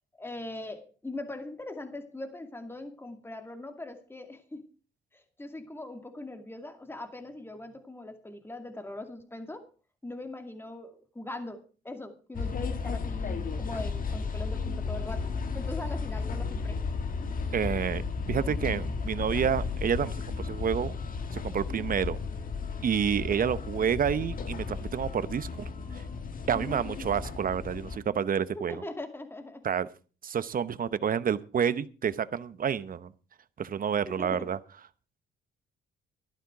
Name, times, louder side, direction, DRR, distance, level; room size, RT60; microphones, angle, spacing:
voice 1, 0.2-4.6 5.1-9.7 10.0-16.8 21.7-21.9 26.5-26.8 28.7-29.7 30.8-30.9 34.1-34.5, left 2 dB, 10° left, 7 dB, 2.2 m, -41 dB
sound 1, 12.3-28.0, left 4 dB, 45° left, 1.5 m, -34 dB
voice 2, 17.5-18.0 18.3-20.9 21.3-22.2 22.8-25.5 25.9-26.0 26.5-28.8 29.6-29.9 30.2-33.1 33.6-34.6, right 7 dB, 45° right, 15 dB, 0.9 m, -29 dB
13.5 x 11.5 x 4.8 m, 0.35 s
cardioid pair, 90°, 20 cm